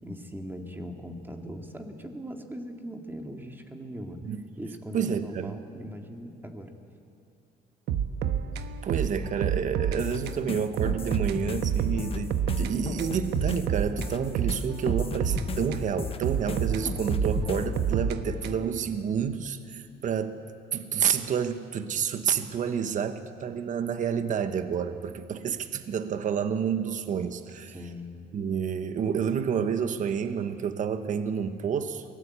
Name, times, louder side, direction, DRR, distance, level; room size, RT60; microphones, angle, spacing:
voice 1, 0.0-4.2 4.6-6.7 27.7-28.3, equal, 10° right, 3 dB, 2.2 m, -40 dB
voice 2, 4.9-5.5 8.8-20.4 20.7-27.8 28.3-32.0, right 7 dB, 50° right, 9 dB, 1.2 m, -29 dB
sound 1, 7.9-10.0 10.3-10.4 10.8-12.7 13.0-15.9 16.2-18.8, right 8 dB, 80° right, 1.2 m, -28 dB
sound 2, 10.0-17.8, left 6 dB, 35° left, 1.2 m, -36 dB
23.0 x 18.5 x 8.4 m, 2.4 s
cardioid pair, 110°, 17 cm